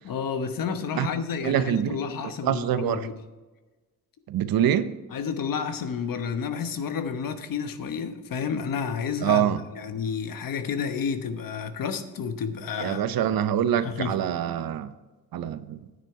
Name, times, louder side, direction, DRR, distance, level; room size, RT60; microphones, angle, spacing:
voice 1, 0.0-3.1 5.1-13.0 13.8-14.1, left 6 dB, 70° left, 1.1 m, -30 dB
voice 2, 1.4-2.0 2.4-3.1 4.3-5.0 9.2-9.6 12.8-14.9 15.3-15.8, right 10 dB, 85° right, 0.7 m, -25 dB
9.5 x 9.5 x 4.6 m
cardioid pair, 120°, 35 cm